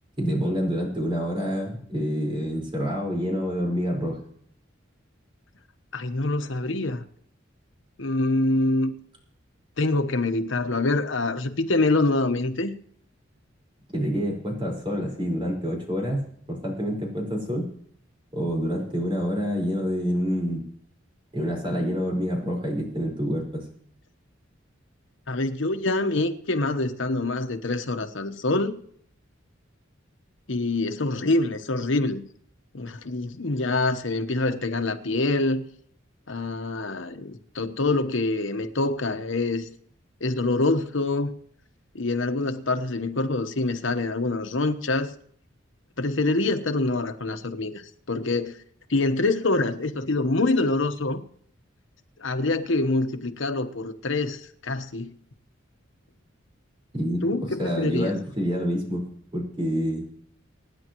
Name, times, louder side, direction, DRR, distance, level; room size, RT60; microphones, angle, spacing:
voice 1, 0.2-4.2 13.9-17.7 18.3-20.6 21.3-23.6 56.9-57.2 57.6-59.0 59.3-60.0, equal, 25° right, 5.0 m, -27 dB
voice 2, 5.9-7.0 8.0-8.9 9.8-12.7 25.3-28.8 30.5-32.2 32.7-35.6 36.3-39.7 40.2-41.3 41.9-45.1 46.0-48.5 48.9-51.2 52.2-55.1 57.2-58.2, left 2 dB, 70° left, 1.1 m, -25 dB
25.0 x 10.0 x 3.1 m
head